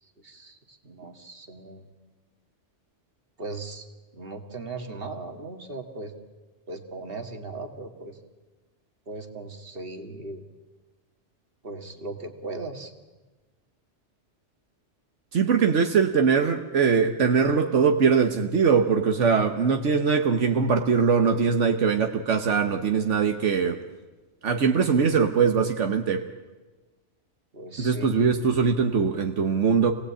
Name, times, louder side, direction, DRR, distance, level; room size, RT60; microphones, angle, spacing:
voice 1, 0.0-1.9 3.4-3.9 4.1-6.1 6.7-8.2 9.1-10.4 11.6-12.9 27.5-28.2, right 3 dB, 50° right, 5 dB, 2.2 m, -38 dB
voice 2, 15.3-23.8 24.4-26.2 27.8-29.9, right 6 dB, 85° right, 5 dB, 1.4 m, -22 dB
27.5 x 18.0 x 8.6 m, 1.2 s
omnidirectional pair, 1.2 m